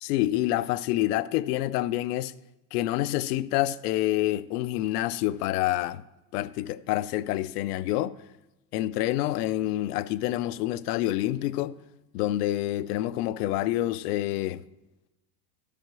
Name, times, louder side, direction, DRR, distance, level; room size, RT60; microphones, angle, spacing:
voice 1, 0.0-2.3 2.7-6.0 6.3-8.1 8.7-11.8 12.1-14.6, left 15 dB, 75° left, 0.6 m, -27 dB
11.5 x 5.0 x 6.1 m
supercardioid pair, 175°, 48 cm